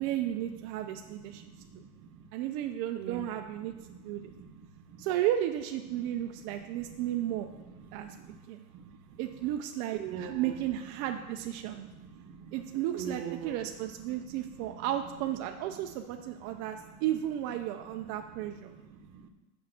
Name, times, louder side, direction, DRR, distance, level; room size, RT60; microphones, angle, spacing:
voice 1, 0.0-1.4 2.3-3.7 4.0-4.3 5.0-7.5 7.9-8.1 8.5-8.6 9.2-11.9 12.5-18.7, right 12 dB, 45° right, 5 dB, 0.5 m, -33 dB
voice 2, 0.9-2.3 3.0-5.1 6.1-8.4 8.7-9.2 9.9-10.6 10.9-11.0 11.6-13.7 14.0-14.9 16.1-16.2 16.5-16.9 17.9-18.0 18.4-19.3, right 7 dB, 65° right, 7 dB, 1.1 m, -46 dB
6.6 x 5.5 x 6.5 m, 1.1 s
supercardioid pair, 125°, 46 cm